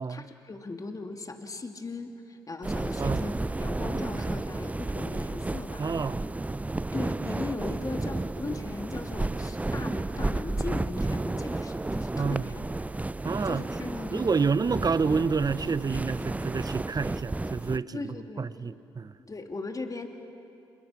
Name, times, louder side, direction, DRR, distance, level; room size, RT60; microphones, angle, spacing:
voice 1, 0.1-5.9 6.7-12.5 13.4-14.5 17.9-18.5 19.2-20.1, left 3 dB, 30° left, 2.8 m, -38 dB
sound 1, 2.6-17.8, right 2 dB, 10° right, 0.5 m, -32 dB
voice 2, 2.9-3.3 5.8-6.2 12.2-12.5 13.2-13.7 14.1-19.1, right 5 dB, 35° right, 0.8 m, -29 dB
28.0 x 26.5 x 6.1 m
hypercardioid pair, 45°, 12 cm